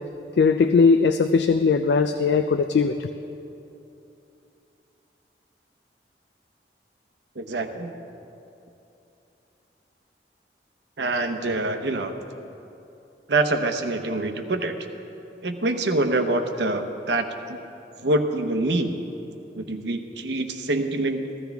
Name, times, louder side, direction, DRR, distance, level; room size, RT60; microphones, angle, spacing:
voice 1, 0.4-2.9, left 5 dB, 75° left, 8 dB, 0.4 m, -19 dB
voice 2, 7.4-7.9 11.0-12.1 13.3-14.7 15.4-17.6 18.0-18.9 19.5-21.2, right 2 dB, 85° right, 7 dB, 0.9 m, -25 dB
15.0 x 13.5 x 3.5 m, 2.8 s
head